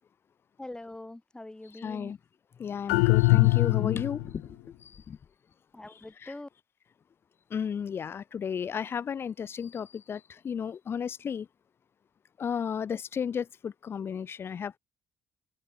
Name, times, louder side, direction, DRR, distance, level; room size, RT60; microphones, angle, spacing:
voice 1, 0.6-2.1 5.7-6.5, left 2 dB, 15° left, 3.9 m, -43 dB
voice 2, 1.8-2.2 2.6-5.2 6.2-6.3 7.5-11.5 12.4-14.8, left 7 dB, 55° left, 4.8 m, -33 dB
sound 1, 2.9-4.4, left 29 dB, 90° left, 0.6 m, -22 dB
hypercardioid pair, 50°, 5 cm